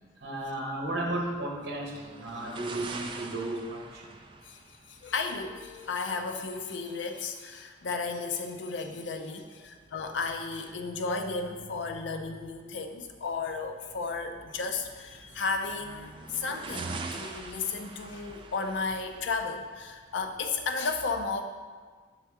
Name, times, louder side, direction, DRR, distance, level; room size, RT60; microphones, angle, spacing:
voice 1, 0.2-4.0, right 1 dB, 60° right, 0 dB, 0.9 m, -34 dB
sound 1, 0.9-20.7, right 3 dB, 25° right, 0.3 m, -46 dB
voice 2, 4.9-21.4, left 4 dB, 70° left, 5 dB, 0.5 m, -34 dB
5.7 x 3.5 x 4.6 m, 1.5 s
head